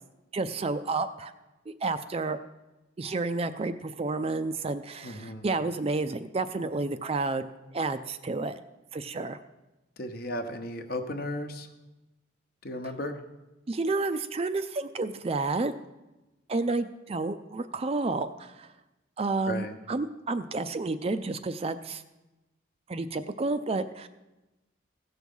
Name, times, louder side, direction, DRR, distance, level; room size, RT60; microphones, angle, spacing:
voice 1, 0.3-1.3 1.7-2.4 3.0-7.5 7.7-8.6 8.9-9.4 13.7-15.7 16.5-18.7 19.2-22.0 22.9-24.1, right 3 dB, 30° right, 11 dB, 0.4 m, -30 dB
voice 2, 5.0-5.5 10.0-11.7 12.6-13.2 19.4-19.7, left 1 dB, 50° left, 7 dB, 0.9 m, -35 dB
16.0 x 6.2 x 5.4 m, 1.0 s
head